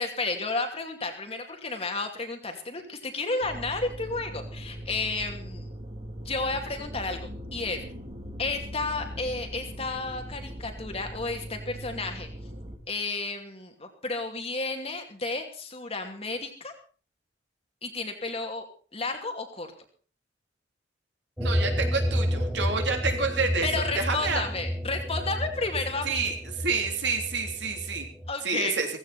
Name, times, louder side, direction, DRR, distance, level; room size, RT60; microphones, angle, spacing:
voice 1, 0.0-5.7 6.2-7.8 8.4-12.3 12.9-16.7 17.8-18.7 18.9-19.7 23.6-26.3 28.3-28.8, left 3 dB, 35° left, 4 dB, 2.7 m, -32 dB
sound 1, 3.4-12.8, equal, 35° right, 2.7 m, -40 dB
sound 2, 21.4-28.3, equal, 5° right, 2.2 m, -30 dB
voice 2, 21.4-24.4 26.0-28.0 28.4-28.9, right 4 dB, 75° right, 3 dB, 3.4 m, -29 dB
16.5 x 16.0 x 4.3 m, 0.38 s
head